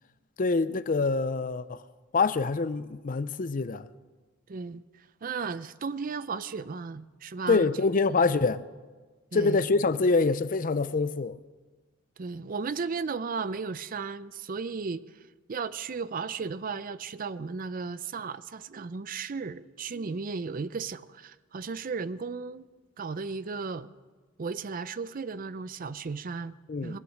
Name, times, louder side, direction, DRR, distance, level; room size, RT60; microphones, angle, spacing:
voice 1, 0.4-1.8 2.1-3.9 7.5-8.6 9.3-11.4 26.7-27.0, left 4 dB, 45° left, 0.5 m, -25 dB
voice 2, 4.5-7.7 8.1-8.2 9.3-9.6 12.2-15.0 15.5-22.7 23.0-23.9 24.4-26.5 26.8-27.0, right 5 dB, 45° right, 0.5 m, -35 dB
22.0 x 8.2 x 6.5 m
head